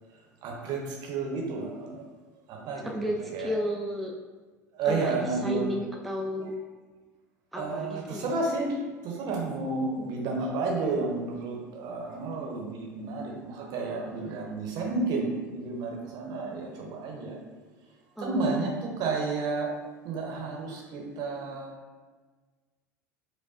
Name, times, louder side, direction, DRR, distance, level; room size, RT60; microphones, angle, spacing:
voice 1, 0.4-2.0 2.5-3.5 4.8-5.7 7.5-17.4 18.2-19.7 20.0-21.8, right 3 dB, 50° right, 0 dB, 0.9 m, -31 dB
voice 2, 2.8-4.1 4.8-6.5 7.5-8.3 18.2-18.7, equal, ahead, -1 dB, 0.4 m, -33 dB
4.7 x 2.2 x 2.6 m, 1.3 s
figure-of-eight pair, 75°, 9 cm